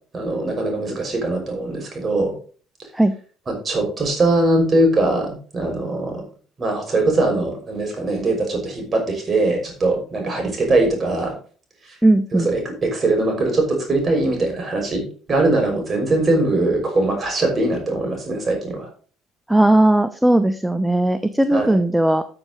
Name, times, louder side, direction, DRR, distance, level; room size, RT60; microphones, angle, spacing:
voice 1, 0.1-2.3 3.5-6.2 6.6-11.3 12.3-15.0 15.3-18.9 21.5-21.8, right 2 dB, 35° right, 2 dB, 5.8 m, -21 dB
voice 2, 12.0-12.5 19.5-22.2, right 1 dB, 5° right, 11 dB, 0.9 m, -17 dB
13.5 x 6.9 x 4.0 m, 0.41 s
hypercardioid pair, 55°, 0 cm